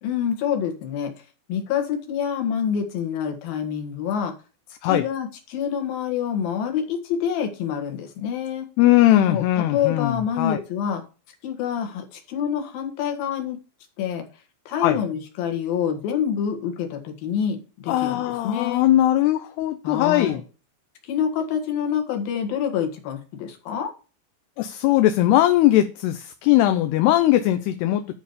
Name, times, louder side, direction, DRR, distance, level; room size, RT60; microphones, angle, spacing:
voice 1, 0.0-1.1 1.5-4.3 4.8-8.7 9.3-9.4 9.7-11.0 11.4-13.6 14.0-14.3 14.7-18.9 19.8-20.4 21.1-23.9, left 8 dB, 60° left, 3.5 m, -27 dB
voice 2, 8.8-10.6 14.8-15.0 17.9-20.4 24.6-28.0, left 14 dB, 75° left, 2.7 m, -19 dB
11.5 x 5.0 x 6.8 m
omnidirectional pair, 5.1 m